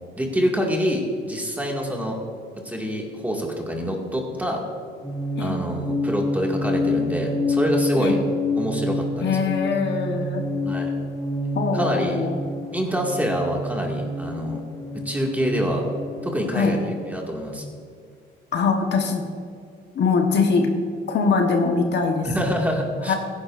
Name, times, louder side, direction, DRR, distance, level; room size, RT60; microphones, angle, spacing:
voice 1, 0.1-2.2 2.6-4.6 5.4-8.2 8.6-9.4 10.7-10.9 11.7-12.2 12.7-14.6 15.1-15.8 16.2-17.6 22.2-23.2, equal, 10° right, 0 dB, 2.0 m, -26 dB
sound 1, 5.0-17.0, left 1 dB, 25° left, 2.7 m, -28 dB
voice 2, 7.9-8.2 9.2-10.5 11.5-12.4 16.5-16.8 18.5-19.2 19.9-20.7 21.1-22.3 23.1-23.2, left 4 dB, 60° left, 3 dB, 1.2 m, -22 dB
16.0 x 10.5 x 2.6 m, 2.3 s
cardioid pair, 90°, 20 cm